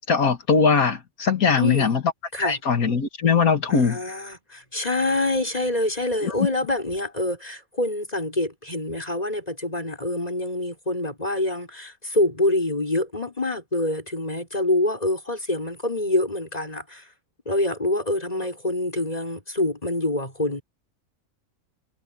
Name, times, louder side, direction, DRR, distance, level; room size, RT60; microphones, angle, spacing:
voice 1, 0.1-2.0 2.4-4.0 6.2-6.5, left 5 dB, 90° left, 2.3 m, -21 dB
voice 2, 1.6-1.9 2.3-2.6 3.7-17.0 17.5-20.6, left 1 dB, 25° left, 6.3 m, -26 dB
omnidirectional pair, 1.5 m